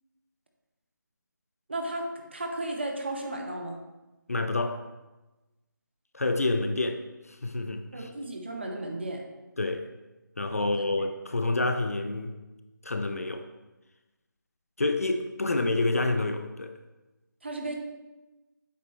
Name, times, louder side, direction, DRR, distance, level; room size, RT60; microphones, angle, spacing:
voice 1, 1.7-3.8 7.9-9.2 10.6-10.7 17.4-17.8, right 1 dB, 30° right, 2 dB, 0.8 m, -34 dB
voice 2, 4.3-4.8 6.1-7.0 7.3-8.1 9.6-9.8 10.4-12.3 12.8-13.4 14.8-16.7, left 2 dB, 45° left, 8 dB, 0.5 m, -28 dB
8.3 x 5.9 x 3.1 m, 1.1 s
figure-of-eight pair, 175°, 11 cm